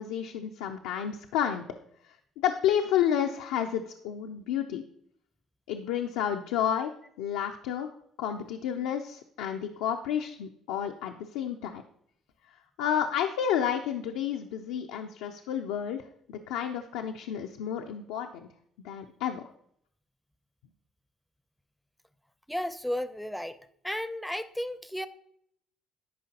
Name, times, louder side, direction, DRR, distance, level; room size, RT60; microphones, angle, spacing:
voice 1, 0.0-1.6 2.4-4.8 5.7-7.9 8.2-11.8 12.8-16.0 16.3-18.5 18.8-19.5, left 9 dB, 80° left, 4 dB, 0.4 m, -30 dB
voice 2, 22.5-23.6 23.8-25.1, left 1 dB, ahead, 13 dB, 0.5 m, -33 dB
10.0 x 5.1 x 2.8 m, 0.70 s
hypercardioid pair, 60°, 0 cm